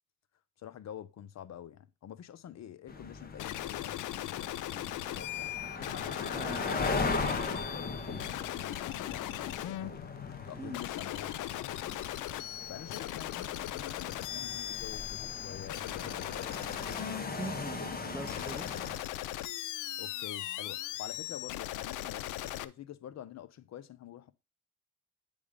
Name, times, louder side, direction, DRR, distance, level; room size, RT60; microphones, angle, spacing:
voice 1, 0.6-5.5 5.9-9.8 10.4-11.7 12.7-16.5 20.0-24.3, left 10 dB, 60° left, 0.8 m, -47 dB
sound 1, 2.9-19.0, left 3 dB, 30° left, 1.5 m, -39 dB
sound 2, 3.4-22.6, left 14 dB, 85° left, 0.6 m, -39 dB
voice 2, 6.3-6.7 10.5-10.8 17.3-18.9, right 2 dB, 10° right, 0.7 m, -42 dB
9.7 x 3.6 x 5.1 m
cardioid pair, 90°, 30 cm